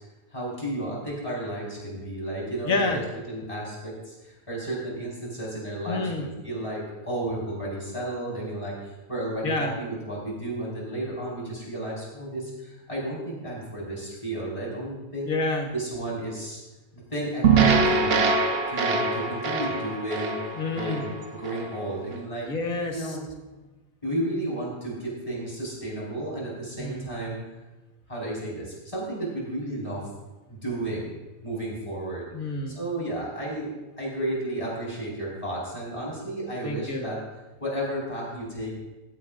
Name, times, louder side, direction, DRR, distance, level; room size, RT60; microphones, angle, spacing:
voice 1, 0.3-3.0 3.3-15.3 15.7-16.6 16.9-18.3 18.7-20.4 20.7-22.5 22.9-23.2 24.0-27.4 28.1-30.1 30.5-31.2 31.4-32.3 32.7-33.7 34.0-37.2 37.6-38.8, right 1 dB, 25° left, -5 dB, 5.1 m, -32 dB
voice 2, 2.6-3.0 5.9-6.3 9.4-9.7 15.2-15.7 20.6-21.1 22.5-23.2 26.8-27.1 32.3-32.8 36.6-37.1, left 3 dB, 85° left, 2 dB, 2.1 m, -28 dB
sound 1, 17.4-21.7, right 4 dB, 50° right, 1.0 m, -23 dB
16.0 x 15.5 x 2.6 m, 1.1 s
omnidirectional pair, 1.5 m